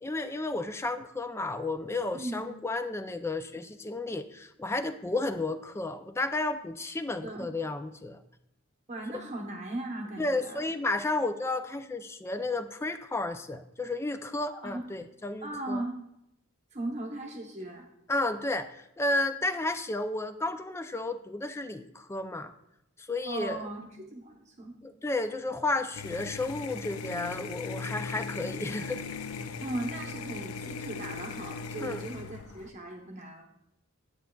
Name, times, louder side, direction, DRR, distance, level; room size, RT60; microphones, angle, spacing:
voice 1, 0.0-8.2 9.1-9.2 10.2-15.8 18.1-22.5 23.1-23.6 24.8-29.0 31.8-32.1, left 2 dB, 10° left, 10 dB, 0.3 m, -32 dB
voice 2, 2.1-2.4 7.2-7.5 8.9-10.6 14.6-14.9 15.4-16.0 16.7-17.9 23.3-24.8 29.6-33.4, right 1 dB, 35° right, 0 dB, 0.9 m, -37 dB
sound 1, 25.9-32.7, left 5 dB, 85° left, 0.5 m, -38 dB
9.9 x 8.0 x 2.3 m, 0.82 s
head